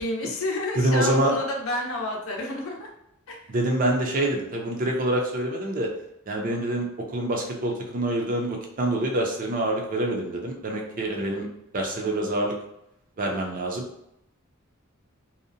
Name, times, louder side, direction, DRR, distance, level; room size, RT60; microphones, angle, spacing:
voice 1, 0.0-2.9 3.3-3.4, left 1 dB, 70° left, 1 dB, 0.6 m, -30 dB
voice 2, 0.8-1.3 3.5-5.9 6.3-11.5 11.7-12.5 13.2-13.8, right 1 dB, 40° right, 0 dB, 0.5 m, -26 dB
2.7 x 2.1 x 2.6 m, 0.80 s
head